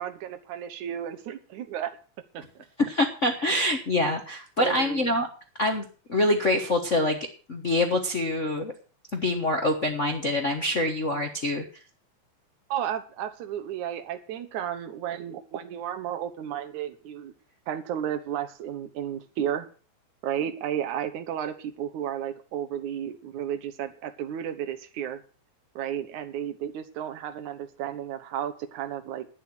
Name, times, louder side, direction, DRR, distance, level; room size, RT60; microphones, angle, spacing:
voice 1, 0.0-2.0 2.3-2.4 4.6-5.0 12.7-17.3 17.7-19.7 20.2-25.2 25.8-29.3, right 10 dB, 80° right, 9 dB, 2.6 m, -33 dB
voice 2, 2.8-5.3 5.6-5.8 6.1-7.2 7.5-8.7 9.1-11.6, left 1 dB, 45° left, 3 dB, 1.0 m, -25 dB
11.5 x 10.0 x 6.2 m, 0.38 s
omnidirectional pair, 3.4 m